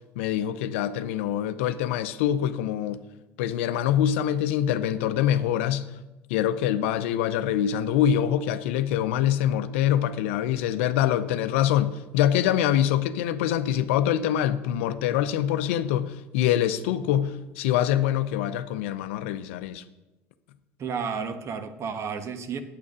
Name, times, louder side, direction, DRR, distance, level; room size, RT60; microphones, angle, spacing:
voice 1, 0.2-3.0 3.4-5.8 6.3-19.8, left 11 dB, 80° left, 0.6 m, -25 dB
voice 2, 20.8-22.6, right 6 dB, 45° right, 1.1 m, -32 dB
8.6 x 8.3 x 6.2 m
hypercardioid pair, 75°, 7 cm